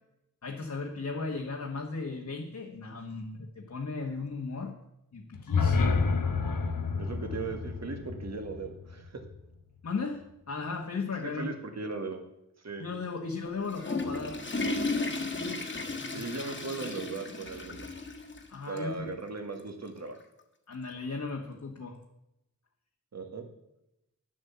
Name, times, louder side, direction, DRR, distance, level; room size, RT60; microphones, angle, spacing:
voice 1, 0.4-4.8 5.1-6.0 9.8-11.5 12.8-14.4 16.0-16.2 18.5-19.1 20.7-22.0, left 4 dB, 60° left, 0 dB, 1.3 m, -36 dB
sound 1, 5.3-9.4, left 4 dB, 90° left, 1.0 m, -29 dB
voice 2, 6.9-9.2 11.2-12.2 12.6-12.8 16.1-17.9 18.7-20.2 23.1-23.4, right 3 dB, 55° right, 5 dB, 1.7 m, -38 dB
Water / Toilet flush, 13.5-18.5 18.8-18.9 19.6-19.7 21.0-21.1, left 3 dB, 35° left, 1.5 m, -34 dB
10.0 x 7.6 x 6.9 m, 0.85 s
wide cardioid pair, 110°, 32 cm